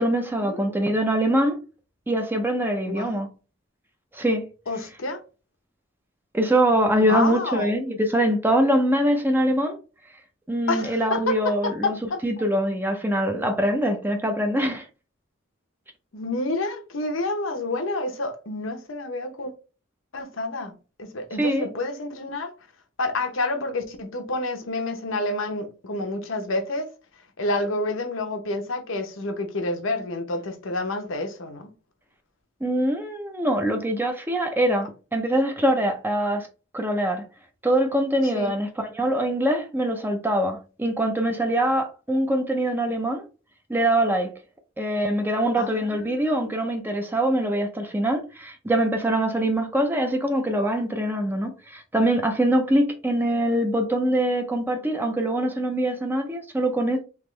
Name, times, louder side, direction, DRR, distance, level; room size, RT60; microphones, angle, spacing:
voice 1, 0.0-1.6 2.1-3.3 4.1-4.5 6.3-9.8 10.5-12.0 12.2-14.9 21.4-21.7 32.6-36.5 36.7-37.2 37.6-43.3 43.7-44.3 44.8-57.0, right 1 dB, 10° right, 0.5 m, -23 dB
voice 2, 2.9-3.2 4.7-5.2 7.0-7.7 10.7-12.2 16.1-19.5 20.1-22.5 23.0-26.9 27.4-31.7 38.2-38.5 45.6-46.4, left 2 dB, 80° left, 0.8 m, -29 dB
3.6 x 2.9 x 3.1 m
head